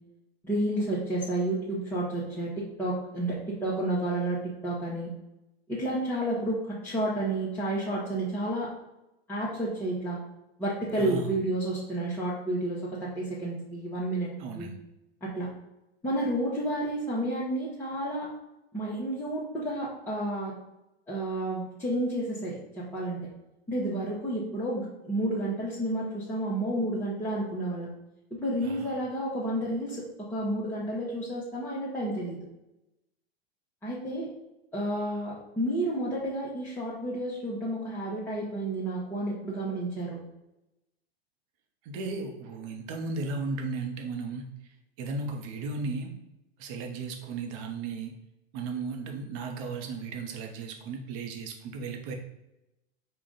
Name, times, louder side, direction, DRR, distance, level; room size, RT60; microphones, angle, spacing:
voice 1, 0.4-5.1 5.7-8.7 9.3-10.2 10.6-14.7 15.2-15.5 16.0-18.3 18.7-20.5 21.1-23.2 23.7-27.9 28.3-32.4 33.8-34.3 34.7-40.2, right 1 dB, 5° left, -9 dB, 1.1 m, -31 dB
voice 2, 11.0-11.3 14.4-14.7 28.6-28.9 41.8-44.5 45.0-46.1 46.6-48.1 48.5-52.1, right 4 dB, 45° right, 3 dB, 0.9 m, -35 dB
4.9 x 2.4 x 3.8 m, 0.93 s
hypercardioid pair, 95°, 33 cm